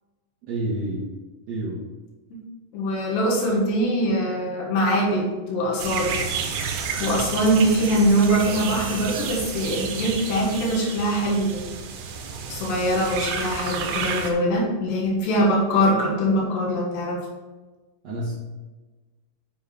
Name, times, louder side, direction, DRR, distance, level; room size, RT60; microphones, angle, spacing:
voice 1, 0.4-1.1 1.5-1.8 18.0-18.4, right 1 dB, 60° right, -5 dB, 1.8 m, -28 dB
voice 2, 2.7-6.2 7.0-11.6 12.5-17.2, equal, 80° left, -2 dB, 3.7 m, -22 dB
sound 1, 5.8-14.3, right 6 dB, 85° right, 3.2 m, -31 dB
8.3 x 7.0 x 3.5 m, 1.2 s
omnidirectional pair, 4.8 m